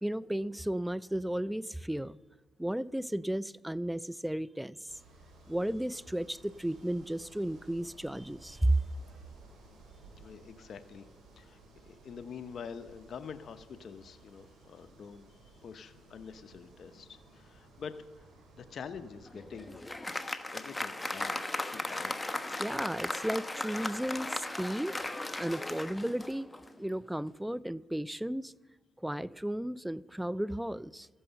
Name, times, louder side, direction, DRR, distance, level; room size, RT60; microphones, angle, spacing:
voice 1, 0.0-2.2 2.6-5.0 5.5-8.8 22.6-25.0 25.4-26.5 26.8-28.5 29.0-31.1, right 1 dB, 5° right, 0.3 m, -34 dB
sound 1, 4.9-19.8, right 2 dB, 70° right, 4.9 m, -57 dB
voice 2, 10.0-11.1 11.4-18.3 18.6-19.8 20.5-22.2, left 6 dB, 55° left, 0.7 m, -46 dB
Applause, 19.3-26.8, left 2 dB, 15° left, 1.1 m, -37 dB
14.0 x 11.0 x 6.9 m
cardioid pair, 90°, 0 cm